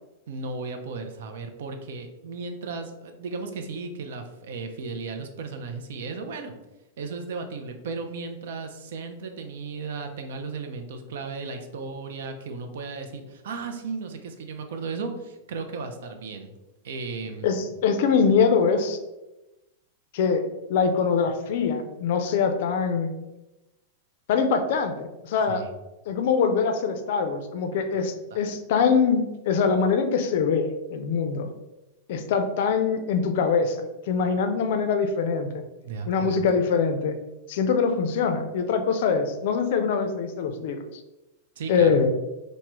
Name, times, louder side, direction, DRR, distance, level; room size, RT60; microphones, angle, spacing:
voice 1, 0.3-6.5 7.0-16.5 16.8-17.8 25.5-25.7 28.3-28.4 35.8-36.4 41.6-42.0, right 4 dB, 65° right, 6 dB, 0.4 m, -35 dB
voice 2, 17.4-19.0 20.1-23.1 24.3-25.6 26.1-31.5 32.1-33.8 34.1-35.6 36.1-37.2 37.5-41.0 41.7-42.1, left 5 dB, 60° left, 7 dB, 0.4 m, -23 dB
3.2 x 2.1 x 2.9 m, 0.98 s
hypercardioid pair, 95°, 0 cm